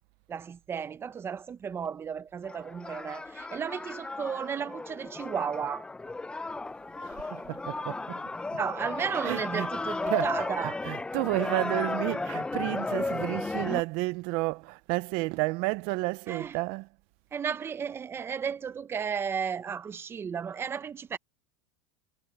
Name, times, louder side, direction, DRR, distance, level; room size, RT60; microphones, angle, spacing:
voice 1, 0.3-5.9 8.6-10.8 16.3-16.6 17.3-21.2, right 7 dB, 25° right, 0.8 m, -34 dB
sound 1, 2.4-13.8, left 3 dB, 10° left, 0.7 m, -34 dB
voice 2, 7.0-8.2 9.2-10.3 10.8-16.9, right 24 dB, 60° right, 0.9 m, -31 dB
supercardioid pair, 125°, 10 cm